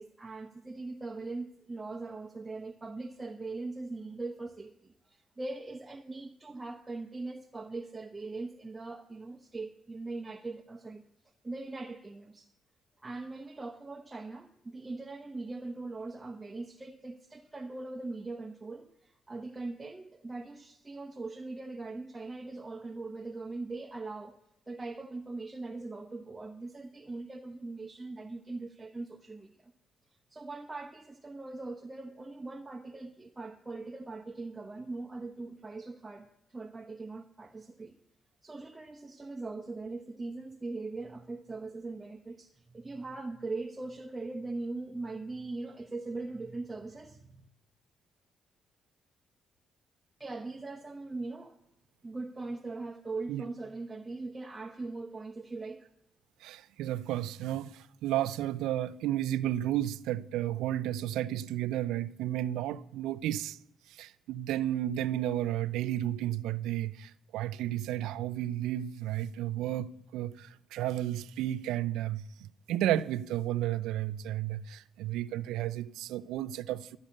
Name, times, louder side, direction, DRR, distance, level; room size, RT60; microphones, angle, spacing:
voice 1, 0.0-11.0 11.4-12.5 13.0-24.4 24.7-29.7 30.3-38.0 38.4-47.5 50.2-51.6 52.0-55.9, right 3 dB, 25° right, 0.9 m, -41 dB
voice 2, 56.4-63.6 64.0-77.0, right 13 dB, 85° right, 0.4 m, -32 dB
12.0 x 6.5 x 8.6 m
supercardioid pair, 65°, 0 cm